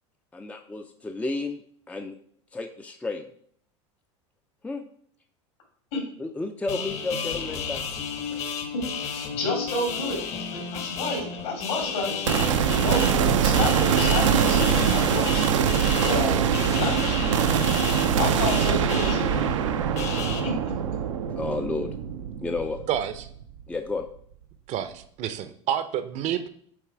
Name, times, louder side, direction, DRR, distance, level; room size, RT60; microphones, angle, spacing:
voice 1, 0.3-1.6 1.9-2.2 2.5-3.3 4.6-4.8 6.2-7.8 8.3-8.4 21.3-21.9 22.4-22.8 23.7-24.1, left 3 dB, 10° left, 6 dB, 0.4 m, -31 dB
sound 1, 6.7-20.4, left 6 dB, 45° left, 1.2 m, -33 dB
voice 2, 9.0-10.2 10.5-15.5 15.8-16.3 16.7-17.0 17.8-19.5 20.4-20.7, left 2 dB, 65° left, 2 dB, 2.8 m, -30 dB
sound 2, 12.3-23.6, right 8 dB, 90° right, 0.6 m, -23 dB
voice 3, 22.9-23.3 24.7-26.5, right 10 dB, 45° right, 12 dB, 0.7 m, -29 dB
8.5 x 3.2 x 4.6 m, 0.62 s
hypercardioid pair, 95°, 16 cm